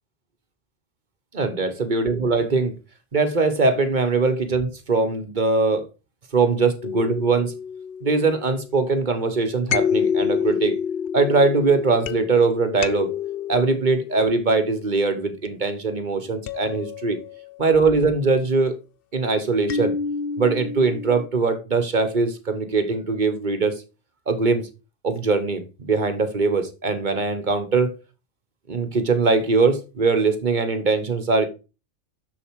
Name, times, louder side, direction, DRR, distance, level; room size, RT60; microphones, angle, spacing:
voice 1, 1.3-2.7 3.1-5.8 6.3-7.5 8.0-10.8 11.1-13.1 13.5-17.2 17.6-18.8 19.1-19.9 20.4-23.7 24.3-24.7 25.0-27.9 28.7-31.5, right 4 dB, 40° right, 1.3 m, -21 dB
sound 1, 6.8-8.8 9.7-15.5 16.5-17.8 19.7-21.3, left 7 dB, 60° left, 0.7 m, -29 dB
7.0 x 7.0 x 4.6 m
omnidirectional pair, 1.2 m